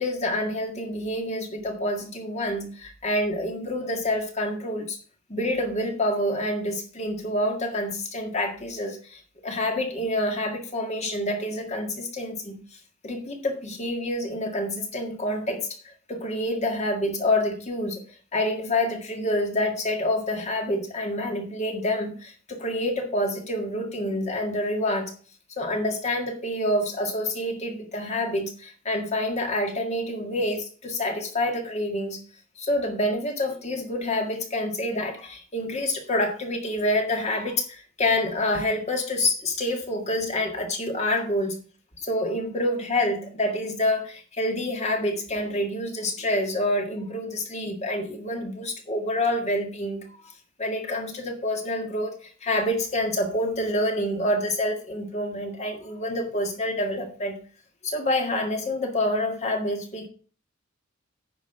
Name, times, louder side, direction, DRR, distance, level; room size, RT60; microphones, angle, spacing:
voice 1, 0.0-5.0 5.3-12.6 13.0-18.0 18.3-25.1 25.6-32.2 32.6-41.6 42.0-50.3 50.6-57.4 57.8-60.1, left 1 dB, 35° left, 3 dB, 1.8 m, -27 dB
9.5 x 5.3 x 5.8 m, 0.42 s
head